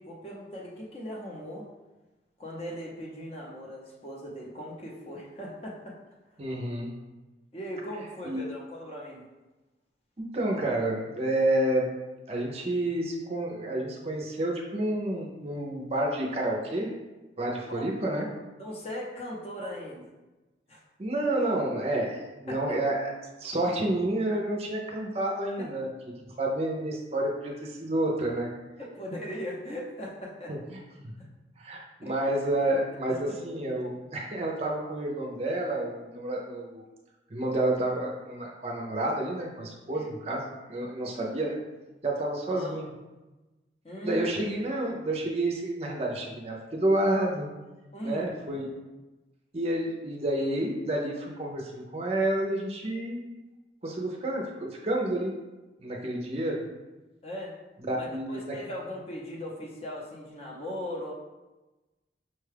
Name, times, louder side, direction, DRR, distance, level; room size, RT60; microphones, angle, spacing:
voice 1, 0.0-1.6 2.4-6.0 7.5-9.2 17.7-17.9 18.6-20.1 20.7-20.8 22.5-22.6 25.6-25.7 28.8-30.5 31.2-31.3 32.0-32.1 39.9-40.1 42.5-42.7 43.8-44.3 47.9-48.3 57.2-57.5 58.0-61.1, equal, 35° left, -2 dB, 0.7 m, -38 dB
voice 2, 6.4-6.9 8.2-8.4 10.2-11.8 12.3-16.9 17.4-18.3 21.0-23.1 23.4-25.9 26.4-28.5 30.5-30.8 31.6-36.8 37.3-41.6 42.0-42.9 44.0-47.5 48.0-48.7 49.5-53.2 53.8-55.4 55.8-56.6 57.8-58.5, right 1 dB, 35° right, 0 dB, 0.5 m, -29 dB
5.5 x 2.3 x 3.3 m, 1.1 s
head